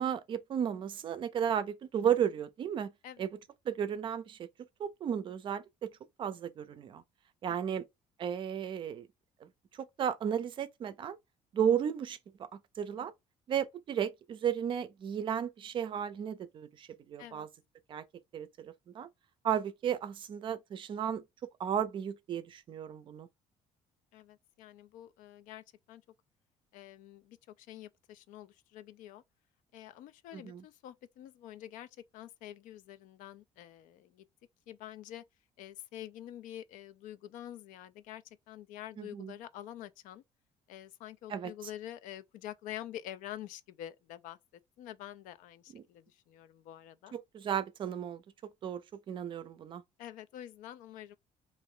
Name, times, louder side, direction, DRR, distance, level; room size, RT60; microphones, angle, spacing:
voice 1, 0.0-2.9 3.2-3.3 3.7-4.5 4.8-5.9 6.2-7.0 7.4-7.8 8.2-9.1 9.4-11.2 11.5-13.1 13.5-17.5 17.9-18.0 18.3-19.1 19.4-21.2 21.6-23.3 30.3-30.6 39.0-39.3 41.3-41.5 45.7-45.8 47.1-48.2 48.6-49.8, right 8 dB, 40° right, 0.4 m, -34 dB
voice 2, 7.5-7.8 17.2-17.5 24.1-26.0 26.7-29.2 29.7-34.2 34.7-35.2 35.6-40.2 40.7-44.4 44.8-47.1 50.0-51.2, left 12 dB, 85° left, 0.4 m, -47 dB
3.0 x 2.5 x 3.6 m
cardioid pair, 150°, 13 cm